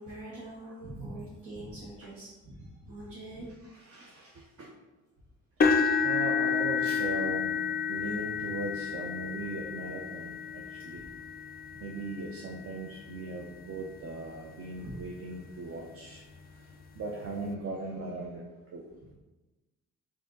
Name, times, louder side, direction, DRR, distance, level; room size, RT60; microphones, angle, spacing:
voice 1, 0.0-3.5 10.9-11.1 14.8-15.0, right 1 dB, 90° right, -9 dB, 1.3 m, -43 dB
voice 2, 3.7-4.7 6.0-11.1 11.8-16.2 16.6-16.7 16.9-18.4 18.7-18.9, right 2 dB, 50° right, -1 dB, 0.6 m, -39 dB
sound 1, 5.6-13.6 14.3-14.5 14.9-15.0 16.4-16.5, left 6 dB, 30° left, 0.4 m, -31 dB
5.1 x 2.7 x 3.8 m, 1.1 s
cardioid pair, 90°, 30 cm